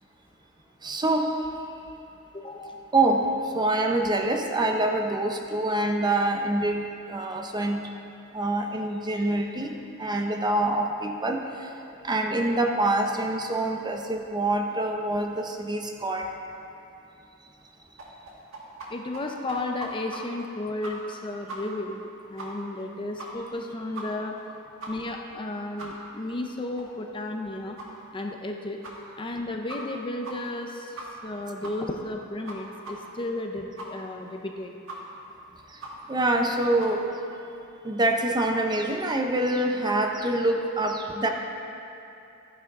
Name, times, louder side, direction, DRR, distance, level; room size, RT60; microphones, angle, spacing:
voice 1, 0.8-1.5 2.9-6.8 7.1-7.8 8.3-11.7 12.0-16.3 35.7-35.8 36.1-37.0 37.8-41.3, right 2 dB, 20° right, 3 dB, 0.7 m, -25 dB
voice 2, 2.3-2.8 18.9-24.4 24.9-27.8 28.1-28.8 29.2-34.7, left 2 dB, 25° left, 2 dB, 0.6 m, -33 dB
sound 1, 18.0-18.9 19.1-19.2 19.5-20.2 20.5-20.6 20.8-21.2 21.5-21.6 21.9-22.0 22.4-22.5 22.8-22.9 23.2-23.5 23.9-24.0 24.4-24.5 24.8-24.9 25.3-25.4 25.8-25.9 26.3-26.4 26.8-26.9 27.2-27.3 27.8-27.9 28.3-28.4 28.8-28.9 29.3-29.4 29.7-30.0 30.2-30.3 30.6-30.7 31.0-31.3 31.6-31.7 32.1-32.2 32.5-32.6 32.8-32.9 33.3-33.4 33.8-33.9 34.3-34.4 34.9-35.0 35.3-35.4 35.8-35.9 36.3-36.4 36.8-36.9, right 2 dB, 65° right, 1.8 m, -39 dB
13.5 x 9.4 x 3.6 m, 2.8 s
head